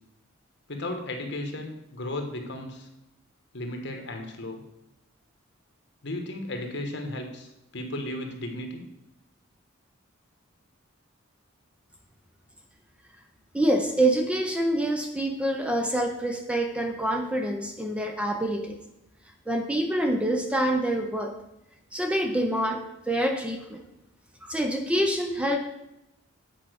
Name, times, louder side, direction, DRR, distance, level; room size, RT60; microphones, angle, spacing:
voice 1, 0.7-2.9 3.5-4.6 6.0-8.8, left 1 dB, 60° left, 4 dB, 1.3 m, -35 dB
voice 2, 13.5-18.8 19.5-21.3 21.9-23.8 24.4-25.6, right 1 dB, 5° right, 4 dB, 0.6 m, -26 dB
8.7 x 4.5 x 6.3 m, 0.88 s
head